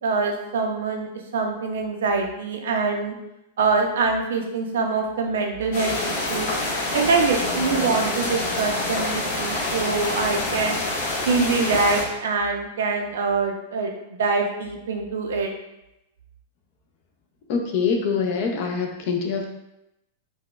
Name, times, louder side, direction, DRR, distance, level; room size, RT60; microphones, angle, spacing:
voice 1, 0.0-3.2 3.6-6.5 6.9-10.8 11.3-13.9 14.2-15.5, right 4 dB, 90° right, 3 dB, 0.5 m, -24 dB
sound 1, 5.7-12.0, left 2 dB, 60° left, 1.4 m, -26 dB
voice 2, 17.5-19.5, left 5 dB, 45° left, 2 dB, 0.5 m, -24 dB
4.0 x 2.1 x 2.3 m, 0.90 s
supercardioid pair, 165°, 0 cm